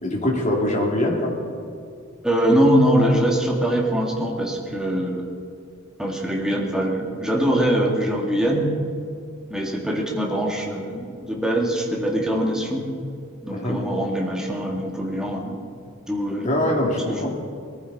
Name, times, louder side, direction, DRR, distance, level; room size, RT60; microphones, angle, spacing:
voice 1, 0.0-1.3 13.5-13.8 16.4-17.3, left 1 dB, 35° left, -2 dB, 2.7 m, -23 dB
voice 2, 2.2-5.2 6.0-8.7 9.5-12.8 13.4-15.6 16.1-16.5, equal, 5° right, -1 dB, 1.9 m, -22 dB
20.5 x 14.5 x 4.1 m, 2.3 s
head